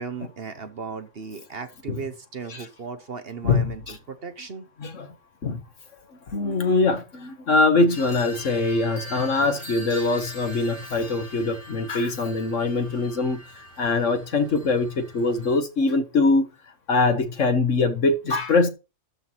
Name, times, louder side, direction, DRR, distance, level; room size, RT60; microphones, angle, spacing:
voice 1, 0.0-4.7, right 5 dB, 50° right, 1.1 m, -36 dB
voice 2, 6.3-16.5 16.9-18.7, left 3 dB, 60° left, 1.7 m, -23 dB
sound 1, 7.9-15.6, equal, 90° left, 4.1 m, -42 dB
12.5 x 4.6 x 5.6 m
omnidirectional pair, 1.5 m